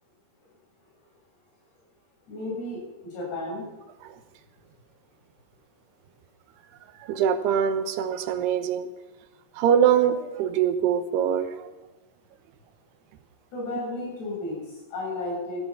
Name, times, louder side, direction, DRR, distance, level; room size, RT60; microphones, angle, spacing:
voice 1, 2.3-3.7 13.5-15.6, left 2 dB, 80° left, -4 dB, 9.2 m, -33 dB
voice 2, 7.1-8.9 9.6-11.5, right 8 dB, 85° right, 9 dB, 3.1 m, -23 dB
17.0 x 13.0 x 5.9 m, 1.2 s
omnidirectional pair, 4.7 m